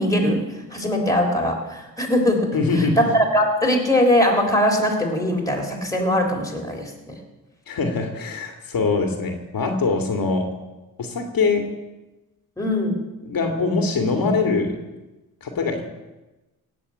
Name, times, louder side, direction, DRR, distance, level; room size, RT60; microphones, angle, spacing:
voice 1, 0.0-7.2 12.6-13.0, left 1 dB, 10° left, 0 dB, 3.5 m, -21 dB
voice 2, 2.5-3.0 7.7-10.5 11.0-11.7 13.3-14.8 15.4-15.8, left 4 dB, 65° left, 4 dB, 2.3 m, -23 dB
17.5 x 7.0 x 8.7 m, 1.1 s
cardioid pair, 95°, 37 cm